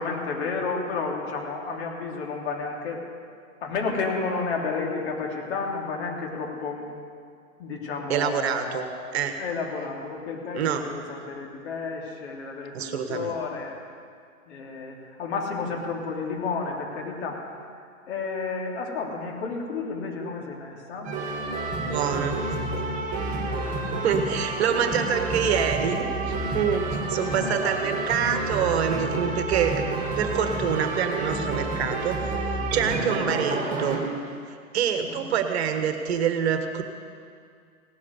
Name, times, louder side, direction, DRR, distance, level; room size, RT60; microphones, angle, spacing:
voice 1, 0.0-3.0 3.6-6.8 7.6-9.1 9.4-13.7 14.5-17.4 18.1-21.1 23.8-24.0 27.2-28.3 33.1-33.3 35.1-35.3, left 4 dB, 50° left, 0 dB, 3.2 m, -31 dB
voice 2, 8.1-8.9 9.1-9.4 10.5-10.8 12.7-13.3 21.8-22.6 24.0-32.2 32.7-34.1 34.5-36.8, right 7 dB, 50° right, 7 dB, 1.4 m, -26 dB
sound 1, 21.0-34.0, right 2 dB, 20° right, 2.8 m, -29 dB
17.0 x 7.5 x 9.7 m, 2.2 s
hypercardioid pair, 125°, 42 cm